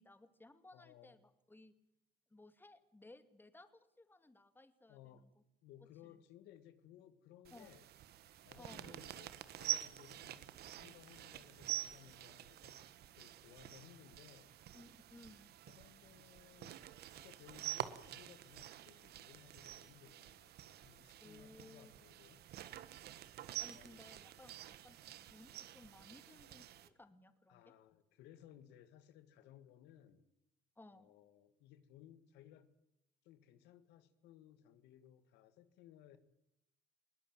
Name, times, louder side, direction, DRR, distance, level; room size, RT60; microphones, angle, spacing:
voice 1, 0.0-1.7 2.3-5.3 6.0-6.2 7.5-7.7 8.6-9.0 14.7-15.5 21.2-22.0 23.6-25.0 25.3-27.6 30.8-31.1, left 2 dB, 10° left, 10 dB, 2.3 m, -60 dB
voice 2, 0.7-1.2 4.9-5.2 5.6-7.9 8.4-12.8 13.2-14.5 15.7-16.9 17.1-22.4 23.7-24.1 24.5-24.6 27.5-30.3 30.9-32.7 33.2-36.2, left 11 dB, 90° left, 12 dB, 1.9 m, -61 dB
sound 1, 7.4-26.9, right 12 dB, 70° right, 1.5 m, -48 dB
21.0 x 18.5 x 9.0 m, 0.77 s
cardioid pair, 110°, 17 cm